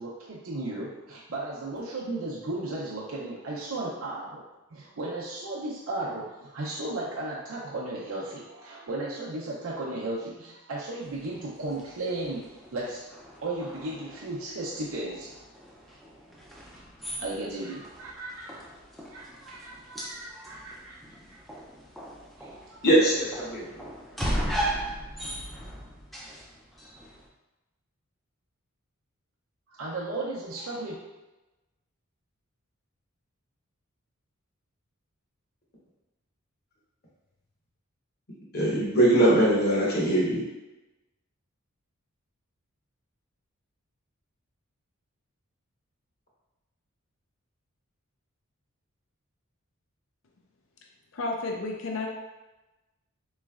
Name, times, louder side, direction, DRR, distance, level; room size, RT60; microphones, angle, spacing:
voice 1, 0.0-4.4 4.7-13.1 13.4-15.4 17.2-18.6 19.1-21.4 22.4-22.8 29.7-31.0, right 2 dB, 75° right, -5 dB, 0.6 m, -35 dB
sound 1, 11.0-27.3, equal, ahead, 0.4 m, -38 dB
voice 2, 22.8-23.6 38.5-40.4, right 1 dB, 45° left, -5 dB, 1.1 m, -21 dB
voice 3, 51.1-52.1, left 3 dB, 65° left, 1 dB, 0.5 m, -31 dB
4.0 x 3.1 x 2.3 m, 1.1 s
head